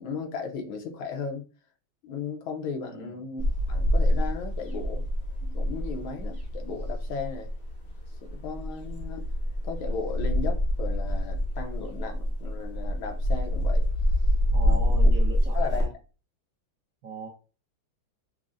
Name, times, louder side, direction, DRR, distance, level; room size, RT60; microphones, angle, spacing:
voice 1, 0.0-1.4 2.0-3.4 3.7-5.0 5.4-7.5 8.2-9.2 9.6-13.8 14.6-14.9 15.5-15.9, left 5 dB, 80° left, 3 dB, 1.6 m, -36 dB
voice 2, 2.8-3.2 14.5-15.9 17.0-17.3, right 3 dB, 65° right, -2 dB, 0.9 m, -39 dB
sound 1, 3.4-15.8, equal, 55° left, 0.7 m, -26 dB
5.9 x 2.0 x 2.5 m, 0.35 s
omnidirectional pair, 2.3 m